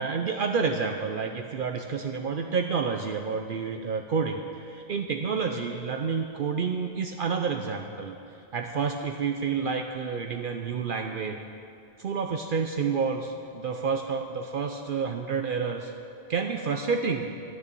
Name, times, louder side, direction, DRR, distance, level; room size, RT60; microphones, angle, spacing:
voice 1, 0.0-8.2 8.5-11.4 12.0-15.9 16.3-17.3, right 5 dB, 60° right, 4 dB, 0.7 m, -29 dB
11.0 x 9.6 x 6.8 m, 2.6 s
omnidirectional pair, 1.1 m